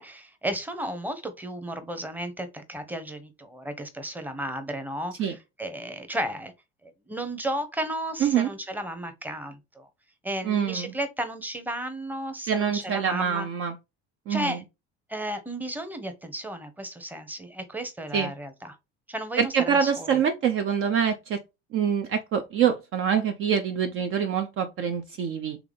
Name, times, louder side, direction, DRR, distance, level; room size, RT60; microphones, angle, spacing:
voice 1, 0.0-6.5 6.8-9.9 10.2-13.5 14.3-14.6 15.1-18.7 19.1-20.2, right 1 dB, 5° right, 0.9 m, -34 dB
voice 2, 8.2-8.5 10.4-10.9 12.5-13.7 14.3-14.6 18.1-18.3 19.4-21.4 21.7-25.6, right 7 dB, 40° right, 0.5 m, -25 dB
3.6 x 3.4 x 3.4 m
figure-of-eight pair, 60°, 33 cm